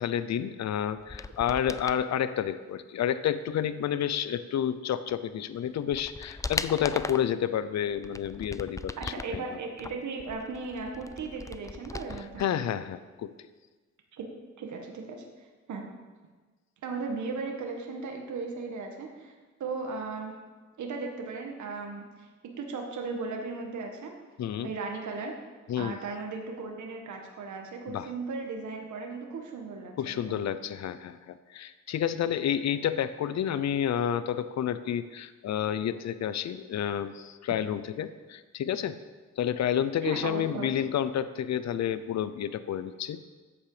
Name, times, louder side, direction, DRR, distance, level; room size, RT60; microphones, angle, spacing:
voice 1, 0.0-9.4 12.4-13.3 24.4-24.7 25.7-26.0 27.9-28.1 30.0-39.0 39.4-43.2, left 9 dB, 65° left, 13 dB, 0.7 m, -30 dB
sound 1, 1.0-2.0 5.1-5.2 5.7-7.3 7.9-9.4 9.8-12.5 12.7-12.8, left 3 dB, 10° left, 0.4 m, -38 dB
voice 2, 9.0-12.4 14.1-14.3 14.6-15.2 15.7-15.8 16.8-19.3 19.6-20.4 20.8-24.1 24.6-25.3 25.8-30.4 40.0-40.7, right 4 dB, 75° right, 2 dB, 1.9 m, -36 dB
13.5 x 8.6 x 5.1 m, 1.3 s
cardioid pair, 90°, 30 cm